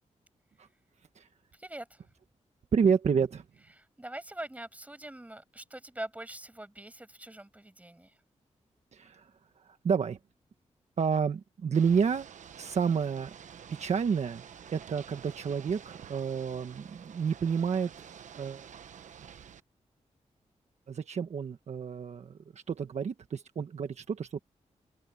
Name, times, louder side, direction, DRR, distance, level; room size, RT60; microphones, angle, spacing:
voice 1, 1.5-2.0 3.8-8.1, right 1 dB, 10° right, 7.4 m, -43 dB
voice 2, 2.7-3.4 8.9-9.3 9.6-10.2 11.0-12.3 12.6-13.3 13.7-14.4 14.7-18.1 18.4-18.7 20.9-24.4, right 6 dB, 65° right, 1.4 m, -30 dB
Ocean / Boat Water vehicle, 11.7-19.6, right 8 dB, 80° right, 1.1 m, -49 dB
open air
wide cardioid pair, 105°, 12 cm